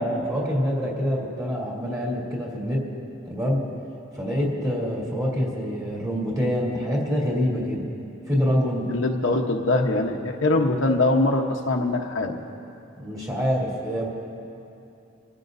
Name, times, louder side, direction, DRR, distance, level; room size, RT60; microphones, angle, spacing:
voice 1, 0.0-2.8 3.3-3.6 4.1-7.8 8.3-8.9 13.0-14.1, equal, 20° right, -4 dB, 2.9 m, -25 dB
voice 2, 8.9-12.4, left 2 dB, 75° left, 2 dB, 1.0 m, -22 dB
26.5 x 13.5 x 2.7 m, 2.7 s
head